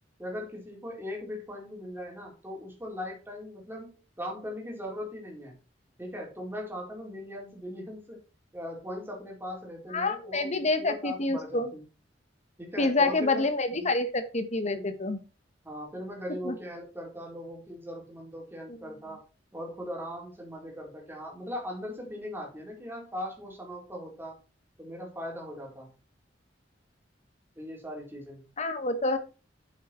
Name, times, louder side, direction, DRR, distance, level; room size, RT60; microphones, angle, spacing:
voice 1, 0.2-5.6 6.0-8.2 8.5-11.8 12.6-13.4 13.7-13.9 14.7-14.9 15.6-19.2 19.5-24.4 24.8-25.9 27.6-28.4, left 1 dB, 10° right, -1 dB, 4.2 m, -39 dB
voice 2, 9.9-11.7 12.8-15.2 16.4-16.6 28.6-29.2, left 2 dB, 40° left, 10 dB, 1.4 m, -27 dB
8.6 x 8.4 x 4.5 m, 0.33 s
head